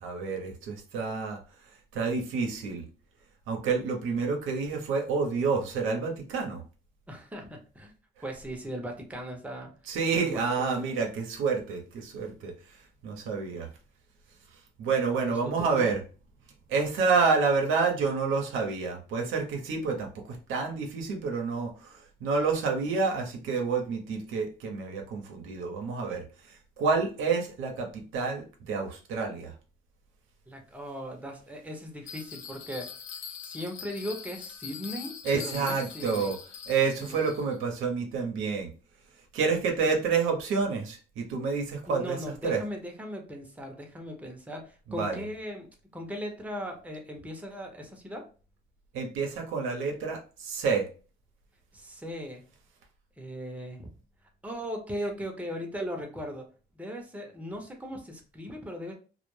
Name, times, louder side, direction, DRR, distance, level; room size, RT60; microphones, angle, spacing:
voice 1, 0.0-1.4 1.9-2.8 3.5-6.6 9.9-12.5 13.0-13.7 14.8-16.0 16.7-29.5 35.2-36.3 36.7-38.7 39.3-42.2 42.4-42.6 45.0-45.2 48.9-50.9, right 5 dB, 85° right, 2 dB, 0.7 m, -29 dB
voice 2, 7.1-7.9 8.2-9.7 10.1-10.9 15.1-15.9 30.5-32.9 33.4-36.3 36.9-37.3 39.8-39.9 41.9-48.2 51.7-52.4 53.2-53.9 54.4-56.4 56.7-58.9, equal, 5° right, 2 dB, 0.7 m, -38 dB
Bell, 32.1-37.6, left 7 dB, 85° left, 0.5 m, -43 dB
2.3 x 2.1 x 3.1 m, 0.36 s
cardioid pair, 90°, 20 cm